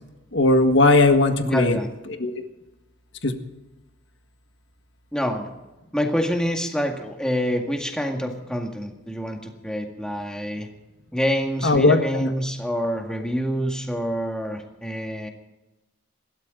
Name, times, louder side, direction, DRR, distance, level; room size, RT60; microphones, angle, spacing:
voice 1, 0.3-1.8 2.2-2.4 3.2-3.4 11.6-12.3, left 2 dB, 60° left, 6 dB, 1.7 m, -18 dB
voice 2, 1.4-1.9 5.1-5.5 5.9-10.7 11.1-15.3, equal, 5° left, 2 dB, 1.9 m, -26 dB
27.0 x 13.0 x 3.9 m, 1.1 s
head